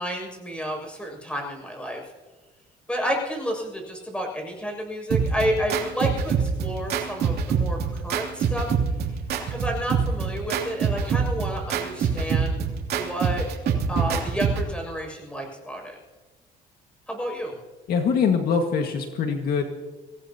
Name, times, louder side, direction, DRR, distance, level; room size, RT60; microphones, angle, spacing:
voice 1, 0.0-2.0 2.9-8.7 9.5-12.6 12.9-13.4 13.9-16.0 17.1-17.6, equal, 5° left, 1 dB, 6.7 m, -30 dB
sound 1, 5.1-14.7, right 6 dB, 65° right, 2.9 m, -25 dB
voice 2, 17.9-19.6, left 6 dB, 65° left, 4 dB, 1.9 m, -23 dB
25.0 x 17.5 x 2.9 m, 1.3 s
cardioid pair, 110°, 17 cm